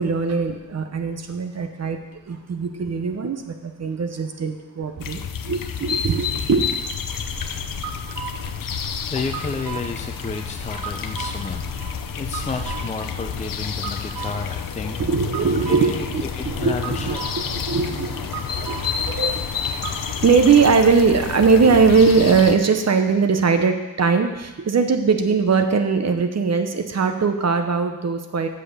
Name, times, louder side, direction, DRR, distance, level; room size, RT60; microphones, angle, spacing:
voice 1, 0.0-6.7 7.6-7.7 8.3-8.5 15.0-17.2 17.4-19.5 20.2-28.5, right 5 dB, 45° right, 7 dB, 0.9 m, -20 dB
sound 1, 5.0-22.6, left 7 dB, 65° left, 0.7 m, -30 dB
sound 2, 7.1-20.1, right 6 dB, 70° right, 0.8 m, -37 dB
voice 2, 9.1-15.0 15.7-16.1 16.3-17.2, left 4 dB, 20° left, 4 dB, 0.5 m, -31 dB
7.9 x 6.7 x 6.7 m, 1.1 s
wide cardioid pair, 160°, 35 cm